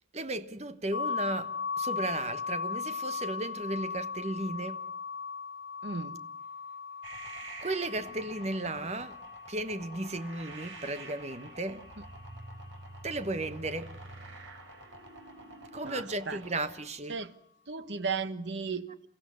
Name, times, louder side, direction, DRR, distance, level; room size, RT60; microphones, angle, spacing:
voice 1, 0.1-4.8 7.6-9.2 9.5-11.8 13.0-14.0 15.7-17.2, right 2 dB, 35° right, 1.2 m, -35 dB
sound 1, 0.9-12.7, left 5 dB, 65° left, 3.1 m, -38 dB
voice 2, 5.8-6.2 15.8-16.4 17.1-17.3 17.7-19.1, right 4 dB, 70° right, 1.3 m, -35 dB
sound 2, 7.0-16.8, right 2 dB, 90° right, 4.1 m, -48 dB
28.5 x 15.5 x 9.6 m
head